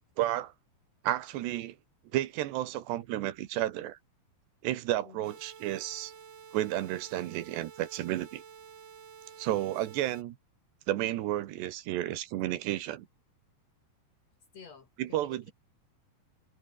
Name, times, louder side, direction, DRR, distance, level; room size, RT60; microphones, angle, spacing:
voice 1, 0.2-0.5 1.0-1.8 2.1-4.0 4.6-6.1 6.5-8.4 9.4-10.4 10.9-13.1 15.0-15.5, right 14 dB, 80° right, 3.4 m, -32 dB
sound 1, 5.2-10.2, right 7 dB, 45° right, 3.0 m, -51 dB
voice 2, 14.5-15.5, left 6 dB, 45° left, 2.5 m, -51 dB
omnidirectional pair, 5.0 m